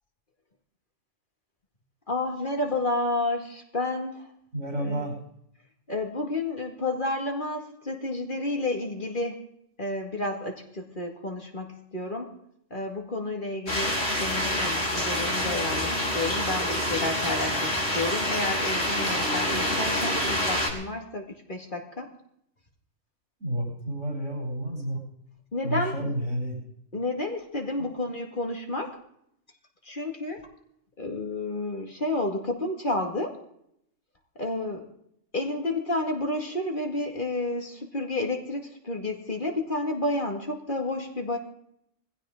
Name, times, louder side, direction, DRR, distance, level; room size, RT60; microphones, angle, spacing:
voice 1, 2.1-4.3 4.7-5.1 5.9-9.4 9.8-12.3 12.7-22.1 25.5-26.1 26.9-29.0 29.8-30.5 31.0-33.4 34.4-34.9 35.3-41.4, left 2 dB, 45° left, 2 dB, 2.3 m, -31 dB
voice 2, 4.5-5.2 23.4-25.0 25.6-26.6 27.8-28.0, right 1 dB, 85° right, -2 dB, 8.5 m, -30 dB
sound 1, 13.7-20.7, left 1 dB, 60° left, 4.7 m, -27 dB
22.0 x 15.5 x 3.8 m, 0.73 s
omnidirectional pair, 1.2 m